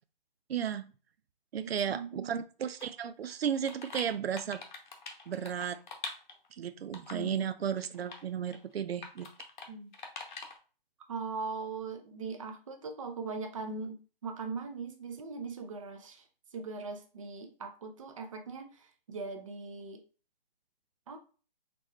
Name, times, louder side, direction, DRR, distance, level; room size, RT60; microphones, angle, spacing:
voice 1, 0.5-0.9 1.5-4.6 5.3-5.8 6.6-9.3, right 8 dB, 85° right, 12 dB, 0.5 m, -34 dB
voice 2, 1.5-2.4 7.1-7.5 9.7-9.9 11.1-16.3 16.5-20.0 21.1-21.2, right 4 dB, 35° right, 5 dB, 0.6 m, -40 dB
sound 1, 2.8-2.9 3.2-6.5 6.9-7.3 7.8-8.2 8.5-8.6 9.0-9.7 9.9-10.6, left 4 dB, 50° left, 0.8 m, -44 dB
4.0 x 3.1 x 2.2 m, 0.36 s
hypercardioid pair, 160°, 30 cm